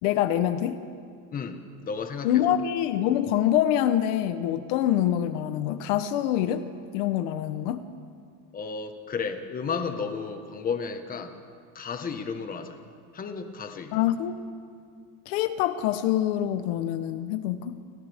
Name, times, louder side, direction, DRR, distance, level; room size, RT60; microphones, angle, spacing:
voice 1, 0.0-0.8 2.2-6.7 6.9-7.9 13.9-14.4 15.3-17.8, left 11 dB, 65° left, 10 dB, 1.1 m, -25 dB
voice 2, 1.8-2.5 8.5-11.4 11.7-12.8 13.1-14.0, left 5 dB, 20° left, 6 dB, 1.5 m, -33 dB
30.0 x 24.0 x 3.6 m, 2.2 s
supercardioid pair, 150°, 40 cm